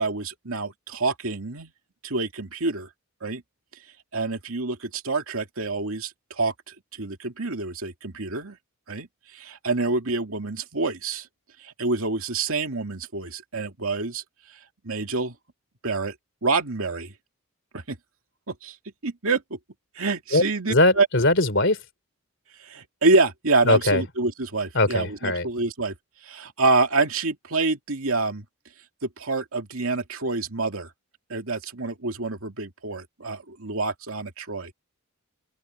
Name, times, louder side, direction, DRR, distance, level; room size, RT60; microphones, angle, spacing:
voice 1, 0.0-1.7 2.0-2.9 3.2-3.4 4.1-8.6 8.9-9.1 9.3-11.3 11.6-14.2 14.8-15.3 15.8-16.1 16.4-17.1 17.7-18.0 18.5-18.8 19.0-19.4 20.0-21.1 22.6-25.9 26.2-28.4 29.0-30.9 31.3-34.7, right 3 dB, 75° right, 2.3 m, -27 dB
voice 2, 20.7-21.8 23.7-24.0 24.7-25.5, left 2 dB, 55° left, 3.5 m, -20 dB
open air
head